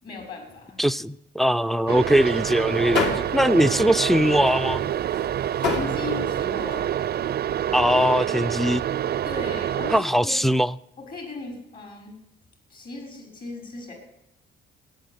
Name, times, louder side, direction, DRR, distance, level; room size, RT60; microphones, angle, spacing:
voice 1, 0.0-0.8 5.6-6.9 9.2-10.4 11.0-12.2 12.7-13.9, left 3 dB, 50° left, 6.1 m, -37 dB
voice 2, 0.8-3.1 3.3-4.9 7.7-8.8 9.9-10.7, equal, ahead, 0.5 m, -21 dB
sound 1, 1.9-10.0, right 10 dB, 55° right, 0.5 m, -27 dB
sound 2, 2.1-6.9, left 4 dB, 65° left, 3.5 m, -31 dB
14.5 x 9.7 x 9.8 m
cardioid pair, 90°, 20 cm